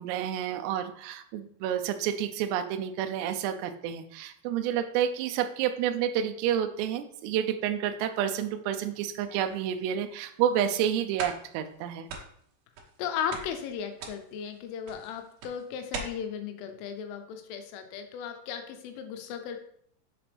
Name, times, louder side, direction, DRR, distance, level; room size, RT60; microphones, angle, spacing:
voice 1, 0.0-12.1, right 9 dB, 90° right, 7 dB, 2.4 m, -29 dB
sound 1, 8.9-9.7 10.3-10.4 10.8-10.9 11.2-11.8 12.1-13.0 13.3-16.0, right 5 dB, 65° right, 2.7 m, -41 dB
voice 2, 13.0-19.6, left 8 dB, 90° left, 7 dB, 3.3 m, -36 dB
7.1 x 5.9 x 3.4 m, 0.67 s
omnidirectional pair, 5.5 m